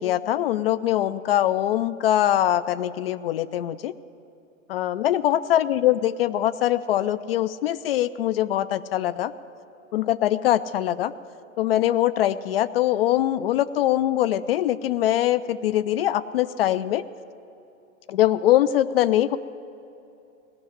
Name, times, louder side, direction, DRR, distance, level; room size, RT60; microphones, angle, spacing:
voice 1, 0.0-3.9 4.7-9.3 9.9-11.1 11.6-17.0 18.1-19.4, left 12 dB, 45° left, 14 dB, 0.4 m, -22 dB
17.0 x 6.3 x 9.9 m, 2.8 s
hypercardioid pair, 115°, 41 cm